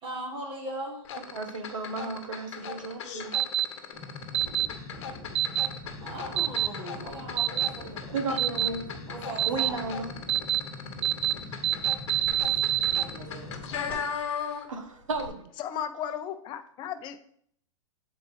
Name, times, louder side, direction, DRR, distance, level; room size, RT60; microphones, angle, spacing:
voice 1, 0.0-1.0 6.0-8.1 9.1-9.8 12.9-14.2, right 1 dB, 30° right, 1.4 m, -39 dB
sound 1, 1.0-14.8 15.1-15.3, left 7 dB, 60° left, 1.0 m, -38 dB
voice 2, 1.3-3.4 8.1-8.8 9.5-10.1 11.5-11.6 14.7-15.3, right 3 dB, 80° right, 1.2 m, -33 dB
sound 2, 3.3-3.6 4.3-4.7 5.3-5.7 6.4-6.7 7.4-7.7 8.4-8.7 9.4-9.7 10.3-10.6 11.0-11.3 11.6-13.0, right 13 dB, 55° right, 0.6 m, -25 dB
sound 3, 3.9-13.9, left 2 dB, 10° left, 2.3 m, -43 dB
voice 3, 15.6-17.2, left 9 dB, 30° left, 0.6 m, -35 dB
7.8 x 4.3 x 3.2 m
hypercardioid pair, 120°, 17 cm